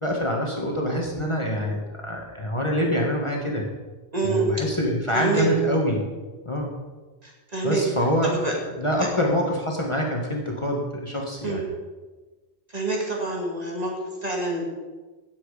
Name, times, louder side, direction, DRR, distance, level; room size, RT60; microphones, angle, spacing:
voice 1, 0.0-3.7 4.2-6.0 6.5-6.7 7.6-8.4 8.8-11.6, equal, 25° left, -1 dB, 1.7 m, -25 dB
voice 2, 4.1-4.5 5.1-5.5 7.2-7.8 8.2-8.6 11.4-11.6 12.7-14.0 14.2-14.7, right 3 dB, 35° right, -1 dB, 2.5 m, -27 dB
16.0 x 7.8 x 5.0 m, 1.3 s
omnidirectional pair, 1.1 m